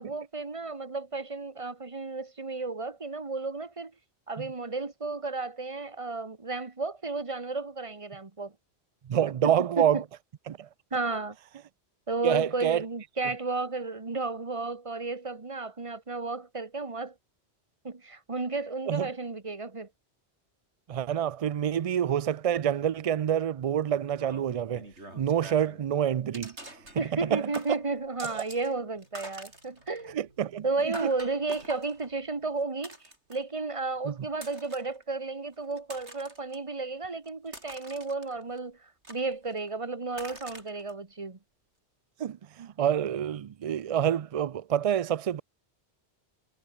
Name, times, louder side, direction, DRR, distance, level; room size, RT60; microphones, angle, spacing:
voice 1, 0.0-3.9 4.3-8.5 9.4-10.0 10.9-11.4 12.1-17.1 17.8-19.9 27.0-30.2 30.6-41.4, right 3 dB, 30° right, 1.4 m, -33 dB
voice 2, 9.1-10.0 10.5-10.7 12.2-12.8 18.9-19.1 20.9-24.9 25.2-26.5 27.3-27.5 28.3-28.4 30.1-30.6 31.0-31.1 34.1-34.2 42.2-45.4, right 9 dB, 65° right, 0.3 m, -27 dB
sound 1, 24.1-25.8 26.3-27.3 27.5-28.7 29.0-33.6 34.3-35.0 35.5-36.6 37.0-38.6 39.0-39.7 40.1-40.9, right 1 dB, 85° right, 7.7 m, -46 dB
omnidirectional pair, 1.1 m